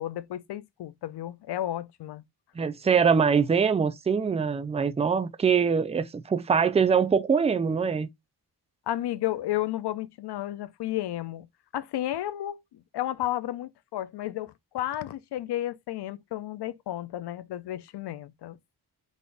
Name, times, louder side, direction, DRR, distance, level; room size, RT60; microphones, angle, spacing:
voice 1, 0.0-2.2 8.9-11.5 11.7-18.6, left 13 dB, 80° left, 0.5 m, -32 dB
voice 2, 2.6-8.1, right 6 dB, 20° right, 0.3 m, -23 dB
4.0 x 2.5 x 3.3 m
wide cardioid pair, 140°, 39 cm